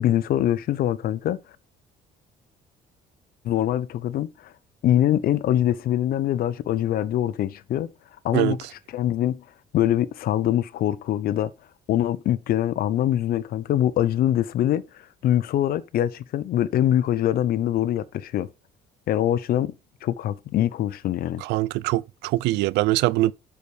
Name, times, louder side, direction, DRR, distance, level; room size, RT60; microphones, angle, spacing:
voice 1, 0.0-1.4 3.4-4.5 4.8-7.9 8.2-8.6 8.9-9.4 9.7-11.5 11.9-18.5 19.1-19.7 20.0-21.4, left 12 dB, 60° left, 0.6 m, -23 dB
voice 2, 21.4-23.3, right 18 dB, 90° right, 0.4 m, -23 dB
6.9 x 5.1 x 4.8 m
cardioid pair, 110°, 17 cm